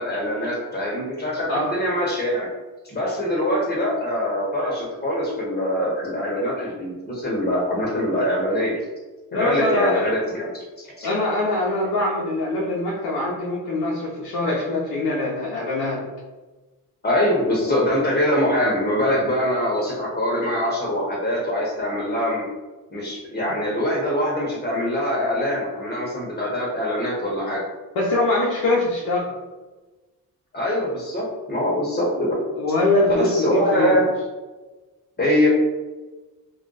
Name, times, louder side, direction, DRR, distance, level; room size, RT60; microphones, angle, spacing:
voice 1, 0.0-2.5 2.8-8.8 9.3-11.1 17.0-22.4 22.9-27.6 30.5-32.4 33.1-34.1 35.2-35.5, equal, 25° left, -4 dB, 0.9 m, -23 dB
voice 2, 9.3-10.1 11.0-16.0 23.4-23.5 28.0-29.3 32.6-34.0, left 2 dB, 75° left, -4 dB, 0.7 m, -23 dB
2.4 x 2.2 x 3.9 m, 1.2 s
cardioid pair, 90°, 37 cm